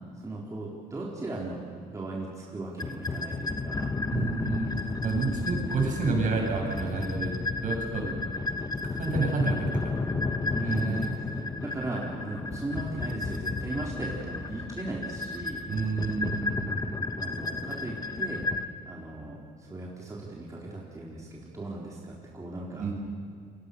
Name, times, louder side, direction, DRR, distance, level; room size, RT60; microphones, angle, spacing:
voice 1, 0.2-1.6 1.9-3.9 10.5-11.3 11.6-15.6 17.2-18.5 18.9-22.9, right 2 dB, 20° right, -4 dB, 4.0 m, -37 dB
sound 1, 2.8-18.6, left 3 dB, 20° left, 1.3 m, -32 dB
voice 2, 4.1-7.3 7.6-8.1 8.9-10.2 10.6-11.1 15.7-17.0 22.8-22.9, right 4 dB, 50° right, 1 dB, 7.5 m, -30 dB
28.5 x 23.5 x 6.8 m, 2.3 s
cardioid pair, 110°, 17 cm